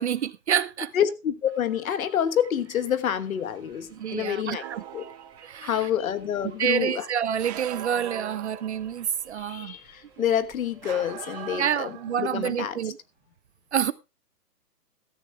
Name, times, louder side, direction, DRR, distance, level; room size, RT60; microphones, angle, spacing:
voice 1, 0.0-0.9 3.9-4.8 5.4-5.9 6.4-9.8 10.2-10.4 11.5-13.0 13.7-13.9, right 9 dB, 45° right, 0.6 m, -28 dB
voice 2, 0.9-4.6 4.9-5.0 5.6-7.0 9.3-11.9 12.2-12.8, left 9 dB, 55° left, 1.4 m, -27 dB
Subway metro underground, 1.4-11.8, right 4 dB, 10° right, 6.3 m, -58 dB
sound 1, 4.6-5.6 7.4-9.1 10.8-12.5, right 12 dB, 25° right, 1.1 m, -40 dB
15.5 x 13.5 x 2.3 m
hypercardioid pair, 150°, 49 cm